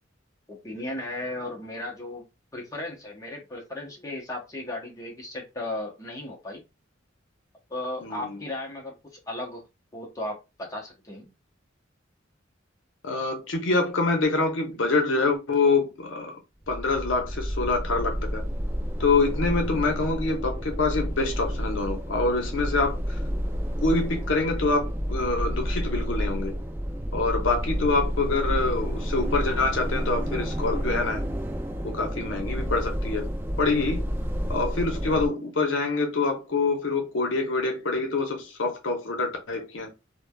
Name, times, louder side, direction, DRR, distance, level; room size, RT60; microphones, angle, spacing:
voice 1, 0.5-2.2 2.5-6.6 7.7-9.6 9.9-11.3, left 1 dB, 20° left, 0.8 m, -35 dB
voice 2, 8.0-8.4 13.0-16.4 16.7-18.4 19.0-23.2 23.8-26.6 27.1-31.2 31.8-33.3 33.6-34.0 34.5-39.9, left 3 dB, 80° left, 0.7 m, -26 dB
sound 1, 16.6-35.3, equal, 10° right, 0.3 m, -30 dB
3.2 x 2.2 x 2.2 m
head